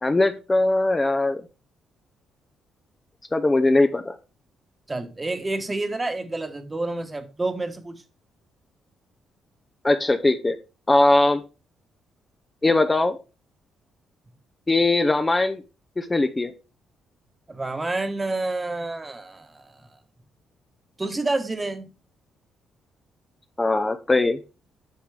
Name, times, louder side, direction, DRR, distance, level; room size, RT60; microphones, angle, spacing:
voice 1, 0.0-1.4 3.3-4.2 9.8-10.6 10.9-11.4 12.6-13.2 14.7-15.6 16.0-16.5 23.6-24.4, left 2 dB, 20° left, 0.6 m, -20 dB
voice 2, 4.9-8.0 17.5-19.8 21.0-21.9, right 2 dB, 20° right, 1.2 m, -29 dB
8.4 x 5.9 x 3.3 m
cardioid pair, 90°, 0 cm